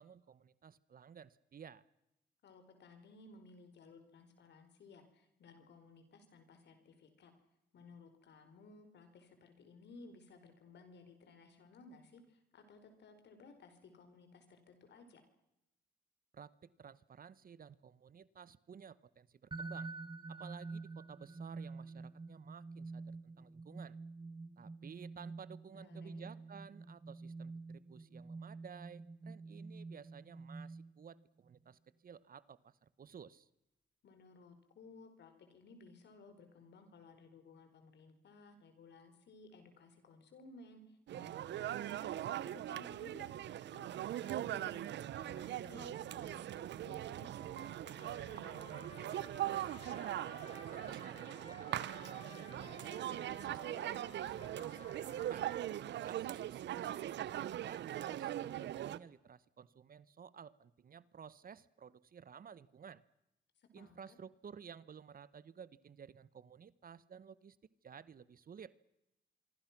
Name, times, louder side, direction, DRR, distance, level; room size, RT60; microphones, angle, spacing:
voice 1, 0.0-1.8 16.3-19.9 20.3-24.0 24.6-33.5 50.3-54.9 55.3-55.5 56.0-63.0 63.7-67.6 67.8-68.7, right 7 dB, 50° right, 18 dB, 1.1 m, -54 dB
voice 2, 2.4-7.3 7.7-15.2 25.7-26.3 34.0-44.8 45.0-49.2 63.6-64.0, left 3 dB, 70° left, 8 dB, 4.6 m, -58 dB
sound 1, 19.5-31.2, right 3 dB, 25° right, 1.8 m, -48 dB
sound 2, 41.1-59.0, right 12 dB, 75° right, 0.8 m, -41 dB
Trumpet, 48.0-55.8, left 3 dB, 35° left, 5.1 m, -56 dB
25.5 x 24.0 x 6.0 m, 0.88 s
supercardioid pair, 60°, 18 cm